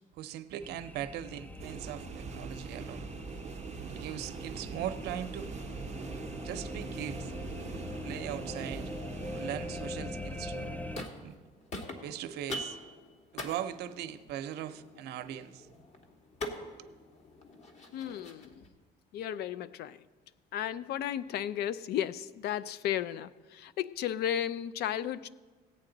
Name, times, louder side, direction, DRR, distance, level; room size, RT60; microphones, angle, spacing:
voice 1, 0.2-3.0 3.9-5.5 6.4-7.3 7.9-8.9 9.3-10.8 11.2-11.4 12.0-12.8 13.3-15.7 16.6-16.9, right 11 dB, 80° right, 11 dB, 0.6 m, -40 dB
sound 1, 0.6-11.0, left 2 dB, 10° left, 0.4 m, -42 dB
sound 2, 1.6-9.9, right 7 dB, 45° right, 0.6 m, -43 dB
sound 3, 10.6-11.4 11.7-18.7, left 1 dB, 40° left, 1.5 m, -44 dB
voice 2, 17.9-18.6 19.1-20.0 20.5-25.3, left 10 dB, 70° left, 17 dB, 0.5 m, -34 dB
16.5 x 8.4 x 3.9 m, 1.3 s
cardioid pair, 110°, 17 cm